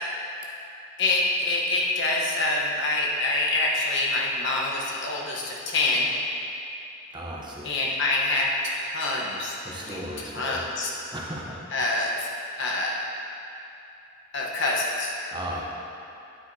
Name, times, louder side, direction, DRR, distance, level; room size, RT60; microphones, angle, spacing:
voice 1, 1.0-6.1 7.6-10.1 10.3-10.9 11.7-13.0 14.3-15.1, left 2 dB, 55° left, -3 dB, 1.1 m, -26 dB
voice 2, 7.1-7.7 9.6-10.6 11.1-11.6 15.3-15.6, right 1 dB, 20° right, -4 dB, 0.8 m, -35 dB
9.3 x 8.2 x 2.8 m, 2.7 s
head